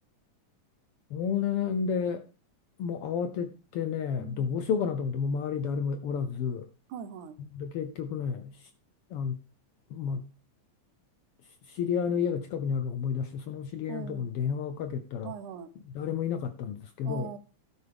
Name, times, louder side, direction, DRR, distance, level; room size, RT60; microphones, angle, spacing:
voice 1, 1.1-2.2 2.8-6.7 7.5-8.7 9.1-9.4 9.9-10.3 11.6-15.3 15.8-17.3, left 7 dB, 80° left, 1.3 m, -31 dB
voice 2, 4.2-4.6 6.9-7.4 13.9-14.3 15.2-15.7 17.0-17.4, right 9 dB, 90° right, 2.5 m, -41 dB
12.5 x 9.7 x 3.5 m
omnidirectional pair, 3.4 m